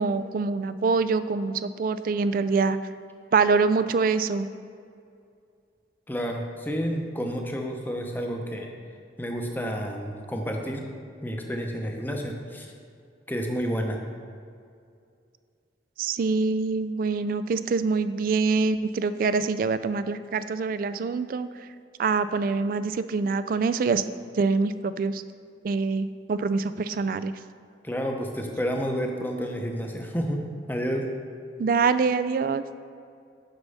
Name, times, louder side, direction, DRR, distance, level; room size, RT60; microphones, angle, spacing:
voice 1, 0.0-2.8 3.3-4.5 16.0-21.5 22.0-24.0 24.3-25.2 25.6-27.3 31.6-32.6, right 4 dB, 50° right, 13 dB, 0.3 m, -25 dB
voice 2, 6.1-8.7 9.2-10.8 11.2-12.7 13.3-14.0 27.8-30.4 30.7-31.1, equal, 10° left, 2 dB, 0.7 m, -30 dB
6.6 x 6.0 x 5.4 m, 2.4 s
head